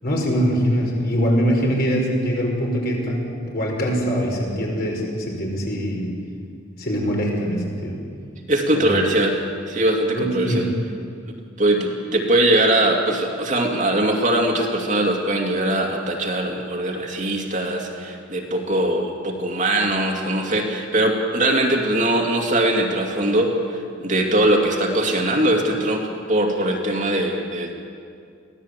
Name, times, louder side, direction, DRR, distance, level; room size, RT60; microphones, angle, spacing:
voice 1, 0.0-6.1 6.8-8.0 8.7-9.0 10.1-10.7, equal, 50° left, -1 dB, 5.6 m, -23 dB
voice 2, 8.5-10.7 11.6-27.7, right 1 dB, 40° right, 1 dB, 2.5 m, -21 dB
24.0 x 16.5 x 8.3 m, 2.3 s
head